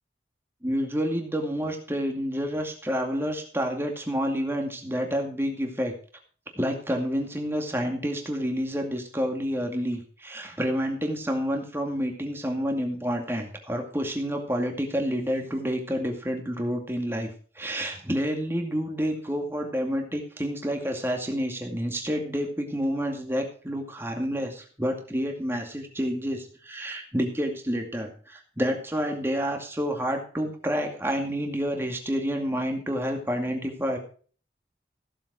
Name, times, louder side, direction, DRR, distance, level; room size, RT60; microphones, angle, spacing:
voice 1, 0.6-5.9 6.6-17.3 17.6-34.0, equal, 15° right, 3 dB, 2.2 m, -29 dB
16.0 x 7.5 x 4.9 m, 0.42 s
head